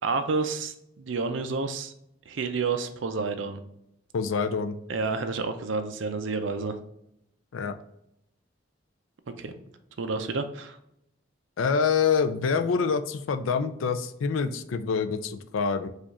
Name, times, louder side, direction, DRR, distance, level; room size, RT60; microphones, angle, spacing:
voice 1, 0.0-1.9 2.3-3.6 4.9-6.8 9.3-9.5 10.0-10.8, right 4 dB, 75° right, 8 dB, 0.5 m, -30 dB
voice 2, 4.1-4.8 7.5-7.8 11.6-15.9, left 5 dB, 90° left, 10 dB, 0.4 m, -26 dB
4.9 x 2.4 x 4.1 m, 0.78 s
head